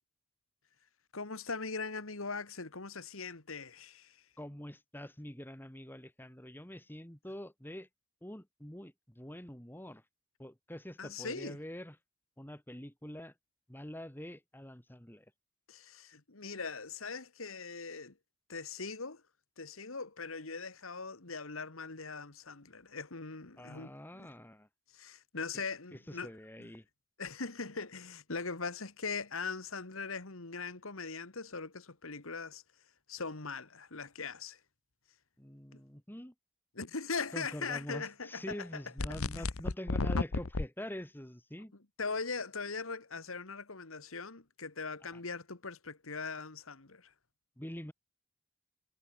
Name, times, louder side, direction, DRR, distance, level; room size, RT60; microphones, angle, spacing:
voice 1, 1.1-4.3 11.0-11.6 15.7-18.2 18.5-19.2 19.6-24.3 24.9-26.3 26.6-26.7 27.2-32.6 33.1-34.6 35.7-35.8 36.7-39.5 42.0-47.1, left 4 dB, 75° left, 2.0 m, -41 dB
voice 2, 4.4-7.9 8.2-10.0 10.4-11.9 12.4-13.3 13.7-15.3 23.6-24.7 25.5-25.7 25.9-26.9 35.4-36.3 37.3-41.7 47.6-47.9, equal, 10° left, 2.2 m, -45 dB
sound 1, 39.0-40.7, left 3 dB, 90° left, 1.1 m, -32 dB
head